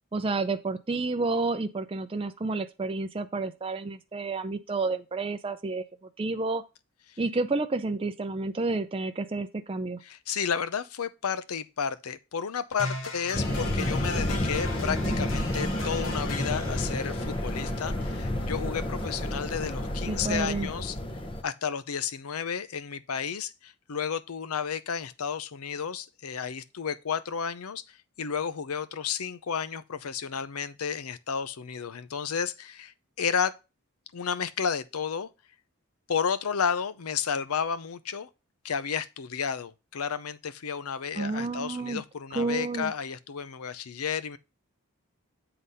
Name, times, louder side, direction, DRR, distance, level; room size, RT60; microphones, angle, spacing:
voice 1, 0.1-5.8 6.2-6.6 7.2-10.0 20.1-20.7 41.2-42.0 42.3-42.9, right 3 dB, 25° right, 0.4 m, -30 dB
voice 2, 10.0-21.0 21.4-27.8 28.2-33.5 34.1-35.3 36.1-38.3 38.6-44.4, left 7 dB, 90° left, 0.6 m, -32 dB
sound 1, 12.8-20.8, left 2 dB, 65° left, 1.6 m, -39 dB
sound 2, 13.3-21.4, left 1 dB, 25° left, 0.7 m, -30 dB
8.1 x 3.9 x 5.5 m
head